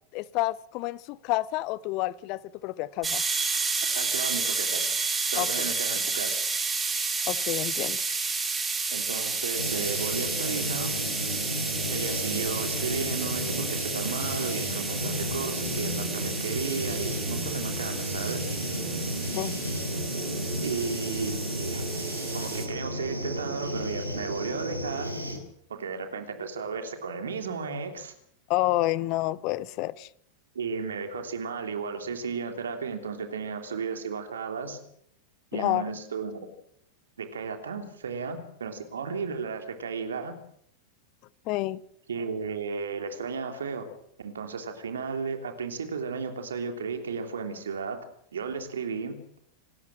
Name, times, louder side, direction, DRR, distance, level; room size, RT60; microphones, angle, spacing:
voice 1, 0.1-3.2 5.4-5.7 7.3-8.0 19.3-19.6 28.5-30.1 35.5-35.8 41.5-41.8, left 17 dB, 40° left, 0.7 m, -29 dB
sound 1, 3.0-22.7, right 4 dB, 15° right, 4.2 m, -31 dB
voice 2, 3.9-4.9 5.3-6.4 8.9-10.9 11.9-18.5 20.6-21.9 22.3-25.1 25.7-28.1 30.5-34.8 35.5-36.5 37.2-40.3 42.1-43.9 44.2-48.0 48.3-49.1, right 5 dB, 65° right, 3.1 m, -34 dB
sound 2, 9.5-25.4, equal, 90° right, 4.7 m, -33 dB
27.0 x 13.0 x 7.4 m
figure-of-eight pair, 90°, 0 cm